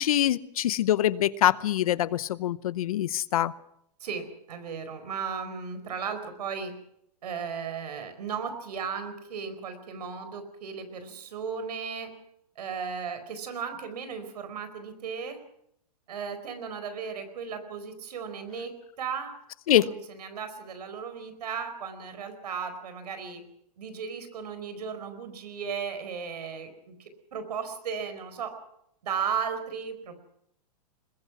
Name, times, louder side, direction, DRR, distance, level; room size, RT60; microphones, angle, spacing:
voice 1, 0.0-3.5 19.7-19.9, left 12 dB, 60° left, 17 dB, 0.8 m, -24 dB
voice 2, 4.0-6.7 7.2-12.1 12.6-15.4 16.1-18.7 19.0-19.3 19.7-23.4 23.8-28.5 29.0-30.2, right 6 dB, 75° right, 9 dB, 4.5 m, -35 dB
22.0 x 21.0 x 6.1 m, 0.74 s
hypercardioid pair, 165°, 21 cm